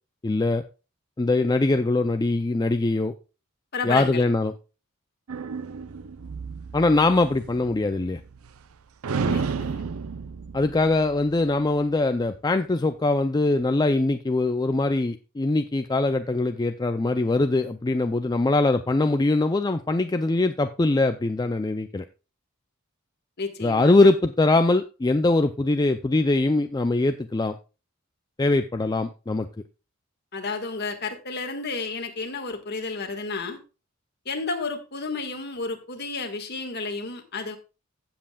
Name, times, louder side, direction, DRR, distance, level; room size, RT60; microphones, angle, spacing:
voice 1, 0.2-0.6 1.2-3.1 3.8-4.5 6.7-8.2 10.5-22.0 23.6-27.6 28.4-29.5, left 2 dB, 20° left, 0.4 m, -22 dB
voice 2, 3.7-4.2 9.2-9.9 23.4-23.9 30.3-33.6 34.2-37.6, left 4 dB, 50° left, 1.7 m, -32 dB
sound 1, 5.3-8.7 9.0-11.7, right 5 dB, 85° right, 0.6 m, -32 dB
15.5 x 7.6 x 2.3 m
head